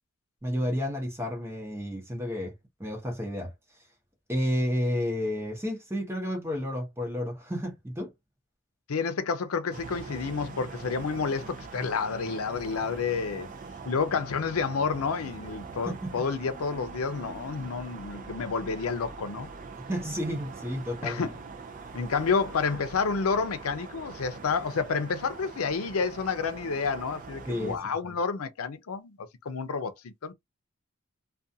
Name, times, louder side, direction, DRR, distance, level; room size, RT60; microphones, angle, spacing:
voice 1, 0.4-2.5 2.8-3.5 4.3-8.1 15.8-16.2 19.9-21.2 27.5-27.9, equal, 10° right, 0.8 m, -31 dB
voice 2, 8.9-13.5 13.8-19.5 21.0-21.3 21.9-29.2 29.4-30.3, left 5 dB, 90° left, 0.5 m, -30 dB
sound 1, 9.7-27.8, right 4 dB, 35° right, 0.4 m, -43 dB
2.4 x 2.3 x 2.7 m
head